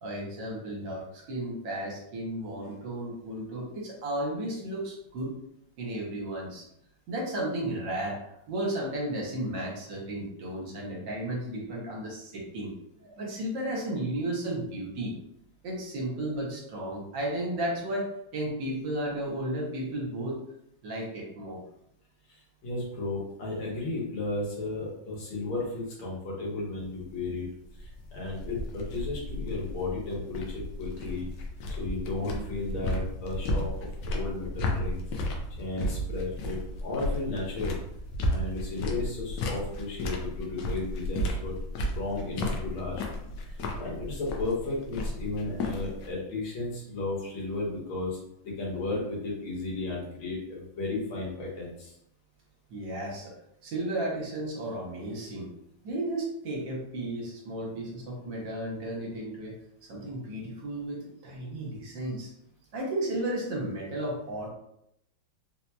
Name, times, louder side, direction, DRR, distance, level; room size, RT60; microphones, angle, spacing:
voice 1, 0.0-5.3 5.8-6.6 7.1-8.2 8.5-12.7 13.0-15.1 15.6-20.4 20.8-21.6 52.7-53.3 53.6-55.5 55.8-59.6 59.9-62.3 62.7-64.5, right 1 dB, 65° right, -2 dB, 1.5 m, -33 dB
voice 2, 22.3-27.5 27.8-31.3 31.8-35.0 35.6-37.8 38.3-43.0 43.4-48.2 48.4-51.9, left 2 dB, 90° left, -4 dB, 2.0 m, -34 dB
sound 1, 26.8-46.1, left 1 dB, 70° left, 1.2 m, -34 dB
4.0 x 2.8 x 2.2 m, 0.77 s
omnidirectional pair, 2.2 m